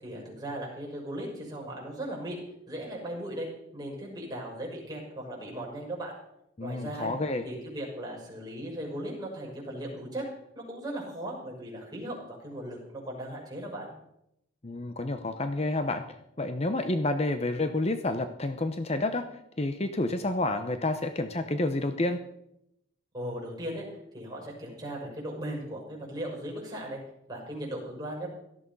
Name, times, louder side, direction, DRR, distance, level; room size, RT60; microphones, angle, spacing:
voice 1, 0.0-2.4 2.7-3.5 3.7-6.2 6.6-7.1 7.4-10.3 10.5-12.8 13.0-13.9 23.1-23.9 24.1-27.0 27.3-28.3, right 1 dB, 20° right, -2 dB, 6.4 m, -37 dB
voice 2, 6.6-7.4 14.6-16.0 16.4-19.3 19.6-22.2, left 2 dB, 35° left, 8 dB, 0.9 m, -29 dB
17.5 x 13.5 x 5.5 m, 0.80 s
head